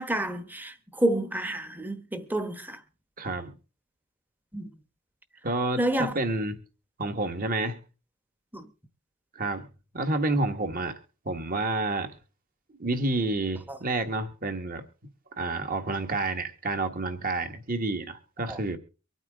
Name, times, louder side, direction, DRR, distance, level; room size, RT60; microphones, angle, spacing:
voice 1, 0.0-2.8 4.5-4.7 5.8-6.1 8.5-8.6 13.7-13.8 18.5-18.6, right 1 dB, 10° right, 1.0 m, -29 dB
voice 2, 3.2-3.5 5.4-6.6 7.0-7.8 9.3-9.7 9.9-10.9 11.2-12.1 12.8-14.8 15.4-18.8, right 2 dB, 40° right, 1.5 m, -29 dB
24.0 x 9.0 x 3.7 m
head